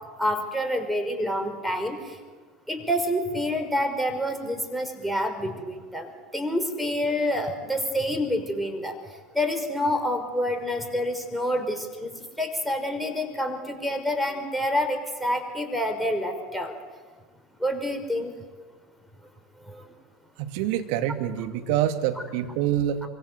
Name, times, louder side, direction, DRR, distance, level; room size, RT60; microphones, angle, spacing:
voice 1, 0.2-2.0 2.7-9.0 9.3-16.7 17.6-18.3 19.7-19.8, equal, ahead, 4 dB, 5.6 m, -27 dB
voice 2, 20.4-23.0, right 11 dB, 60° right, 7 dB, 2.4 m, -26 dB
26.0 x 24.5 x 8.1 m, 1.4 s
figure-of-eight pair, 75°, 0 cm